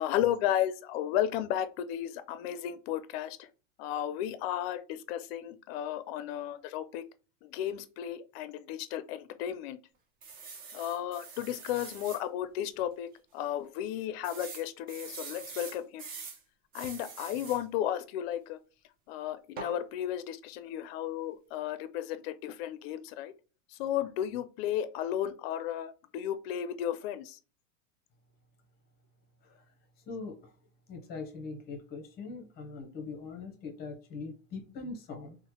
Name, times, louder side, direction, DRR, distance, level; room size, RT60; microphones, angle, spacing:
voice 1, 0.0-3.5 3.8-7.0 7.4-9.8 10.7-16.1 16.7-18.6 19.1-23.3 23.8-27.4, left 11 dB, 55° left, 0.5 m, -34 dB
sound 1, 10.2-12.2 12.8-12.9 13.1-13.2 14.2-16.4 16.7-17.6 19.6-19.8, right 5 dB, 25° right, 0.5 m, -44 dB
voice 2, 30.0-30.5 30.9-35.4, left 4 dB, 25° left, 0.8 m, -42 dB
3.0 x 2.1 x 2.9 m
supercardioid pair, 140°, 37 cm